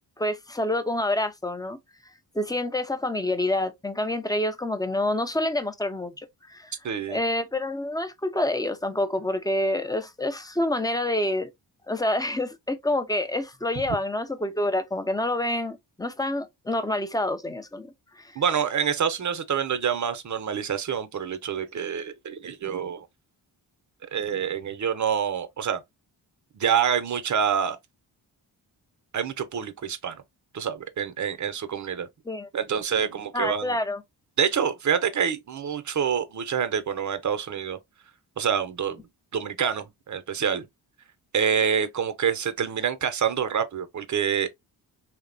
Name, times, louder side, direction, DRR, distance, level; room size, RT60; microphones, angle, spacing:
voice 1, 0.2-1.8 2.3-6.1 6.5-6.7 7.1-11.5 11.9-17.9 18.2-18.3 32.3-32.5 33.3-34.0, left 1 dB, 10° left, 0.4 m, -27 dB
voice 2, 6.8-7.2 18.4-23.1 24.1-25.8 26.5-27.8 29.1-30.2 30.5-32.1 32.5-33.8 34.4-37.8 38.4-39.0 39.3-40.7 41.3-44.5, right 7 dB, 40° right, 0.6 m, -27 dB
2.8 x 2.1 x 2.5 m
supercardioid pair, 45°, 46 cm